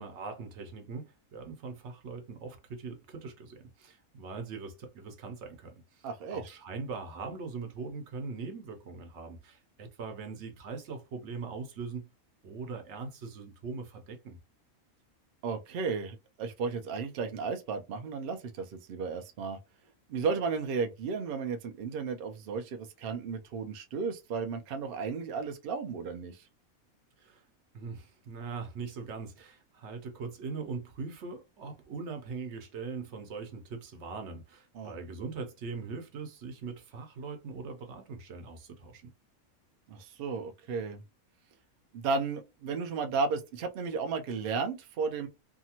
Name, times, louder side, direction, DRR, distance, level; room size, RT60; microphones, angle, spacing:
voice 1, 0.0-12.1 12.4-14.4 27.2-27.4 27.7-39.0, right 4 dB, 60° right, 0.9 m, -41 dB
voice 2, 6.0-6.4 15.4-19.6 20.1-26.4 34.7-34.9 39.9-41.0 41.9-45.3, right 5 dB, 80° right, 0.5 m, -34 dB
2.6 x 2.4 x 2.8 m
omnidirectional pair, 1.5 m